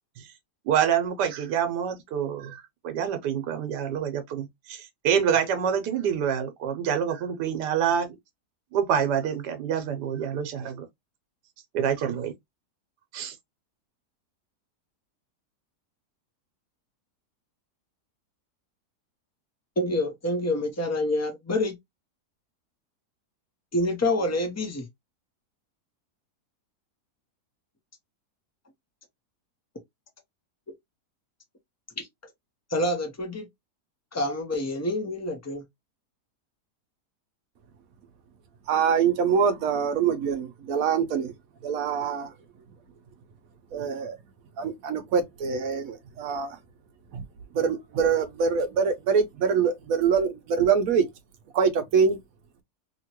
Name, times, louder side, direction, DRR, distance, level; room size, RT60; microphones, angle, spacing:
voice 1, 0.6-8.2 8.7-10.9 11.7-12.3 13.1-13.4, right 8 dB, 90° right, 1.3 m, -27 dB
voice 2, 19.8-21.8 23.7-24.9 32.0-32.1 32.7-33.5 34.1-35.6, left 1 dB, 25° left, 0.3 m, -27 dB
voice 3, 38.7-41.3 41.6-42.3 43.7-44.2 44.6-46.6 47.1-47.2 47.5-51.0 51.5-52.2, right 6 dB, 65° right, 1.0 m, -24 dB
2.9 x 2.9 x 2.8 m
omnidirectional pair, 1.7 m